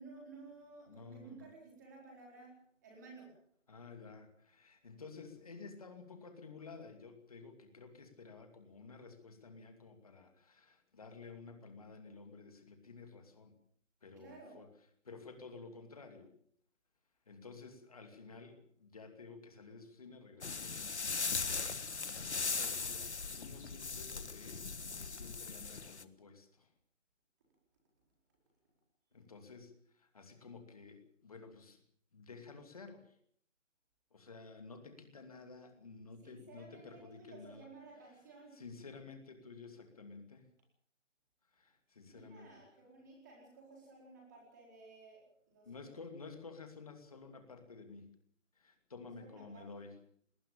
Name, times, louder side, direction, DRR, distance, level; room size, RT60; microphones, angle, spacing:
voice 1, 0.0-2.5 2.8-3.3 14.2-14.6 36.2-38.6 42.1-45.2 45.5-46.0 46.3-46.4 49.0-49.7, right 3 dB, 15° right, -1 dB, 4.5 m, -55 dB
voice 2, 0.9-1.4 3.7-13.5 14.0-14.7 15.0-16.3 17.3-26.7 29.1-31.8 32.1-33.2 34.1-37.7 38.5-40.5 41.5-42.6 45.6-48.1 48.5-49.9, left 4 dB, 30° left, 7 dB, 2.7 m, -52 dB
sound 1, 20.4-26.0, left 4 dB, 65° left, 1.5 m, -39 dB
20.5 x 20.0 x 7.0 m, 0.65 s
figure-of-eight pair, 175°, 37 cm